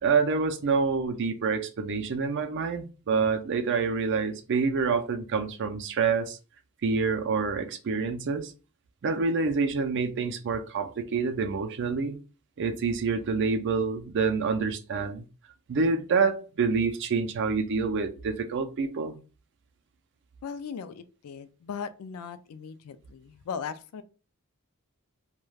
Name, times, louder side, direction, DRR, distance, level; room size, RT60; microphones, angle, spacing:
voice 1, 0.0-6.4 6.8-8.5 9.0-12.2 12.6-15.2 15.7-19.2, right 5 dB, 55° right, 0.4 m, -27 dB
voice 2, 20.4-24.0, left 6 dB, 80° left, 0.3 m, -38 dB
2.3 x 2.2 x 3.2 m
head